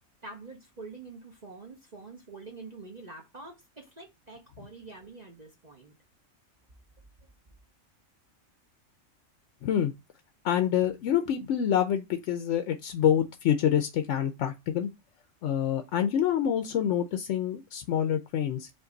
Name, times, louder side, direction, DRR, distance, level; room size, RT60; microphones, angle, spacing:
voice 1, 0.2-5.9, right 3 dB, 35° right, 0.8 m, -46 dB
voice 2, 9.6-9.9 10.4-14.9 15.4-18.7, left 9 dB, 70° left, 0.9 m, -27 dB
5.2 x 2.6 x 3.8 m
omnidirectional pair, 1.4 m